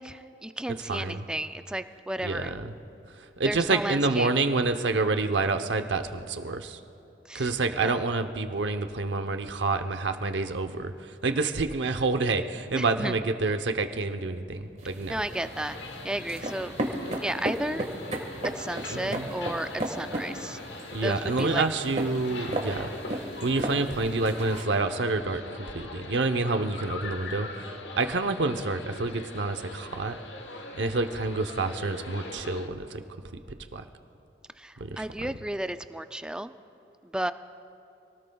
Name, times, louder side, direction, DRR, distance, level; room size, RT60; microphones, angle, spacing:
voice 1, 0.0-2.6 3.4-4.3 7.3-8.0 12.7-13.1 15.1-15.8 16.0-16.7 17.2-17.9 18.6-20.6 21.0-21.7 22.3-22.5 34.6-36.5 37.0-37.3, right 1 dB, 5° right, 10 dB, 0.3 m, -33 dB
voice 2, 0.9-1.2 2.2-2.7 3.4-6.8 7.3-10.9 11.2-15.2 18.9-19.3 20.9-27.7 28.0-30.2 30.7-33.0 33.7-33.8 34.8-35.0, right 3 dB, 75° right, 7 dB, 0.8 m, -28 dB
sound 1, 14.8-24.6, right 1 dB, 40° right, 1.6 m, -35 dB
sound 2, 15.3-32.7, left 3 dB, 70° left, 1.2 m, -42 dB
26.5 x 18.5 x 2.3 m, 2.9 s
head